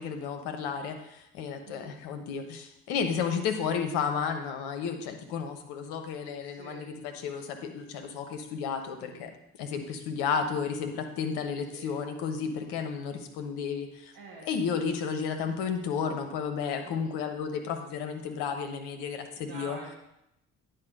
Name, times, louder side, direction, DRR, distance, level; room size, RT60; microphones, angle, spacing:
voice 1, 0.0-9.3 9.6-14.1 14.4-19.8, left 6 dB, 65° left, 6 dB, 1.1 m, -32 dB
voice 2, 1.6-2.0 6.5-6.9 9.0-9.4 11.7-12.0 14.1-14.6 16.8-17.2 19.4-20.0, right 3 dB, 55° right, -3 dB, 1.5 m, -47 dB
9.8 x 4.1 x 5.3 m, 0.84 s
figure-of-eight pair, 45°, 43 cm